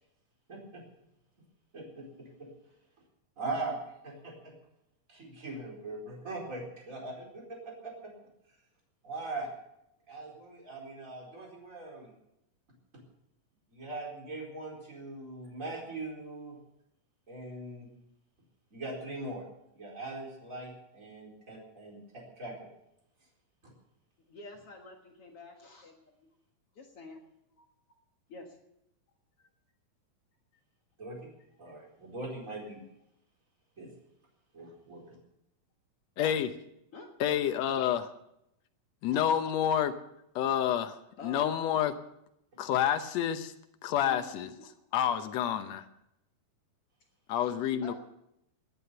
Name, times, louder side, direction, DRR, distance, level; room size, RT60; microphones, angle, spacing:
voice 1, 0.5-0.8 1.7-2.5 3.4-4.5 5.1-8.1 9.0-9.5 10.1-12.1 13.7-16.6 17.3-17.9 18.7-19.4 19.7-22.7 31.0-31.3 31.6-32.8 33.8-33.9 34.5-35.2, right 2 dB, 20° right, -1 dB, 4.4 m, -41 dB
voice 2, 24.3-26.3 26.8-27.2 27.6-27.7 28.3-28.6 36.9-37.1 41.2-41.6 44.0-45.0 47.8-47.9, left 4 dB, 50° left, 2 dB, 2.0 m, -47 dB
voice 3, 36.2-36.5 37.2-38.1 39.0-39.9 40.3-41.0 41.2-41.9 42.6-43.5 43.8-44.5 44.9-45.8 47.3-47.9, left 10 dB, 85° left, 8 dB, 1.5 m, -28 dB
19.0 x 9.8 x 6.8 m, 0.81 s
omnidirectional pair, 4.2 m